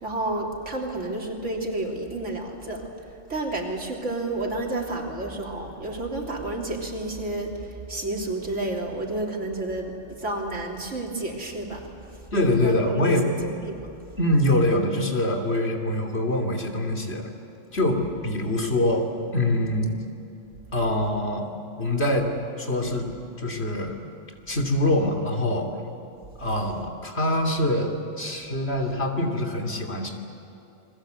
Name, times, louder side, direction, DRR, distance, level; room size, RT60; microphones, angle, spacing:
voice 1, 0.0-2.8 3.3-7.5 7.9-9.9 10.2-11.8 12.6-13.1 13.6-13.9, right 2 dB, 85° right, 0 dB, 3.7 m, -30 dB
voice 2, 12.3-13.4 14.1-17.3 17.7-20.0 20.7-21.5 21.8-22.3 22.6-23.1 23.4-24.0 24.5-25.7 26.4-30.1, left 1 dB, 60° left, 3 dB, 3.1 m, -24 dB
29.0 x 21.5 x 8.2 m, 2.9 s
omnidirectional pair, 1.2 m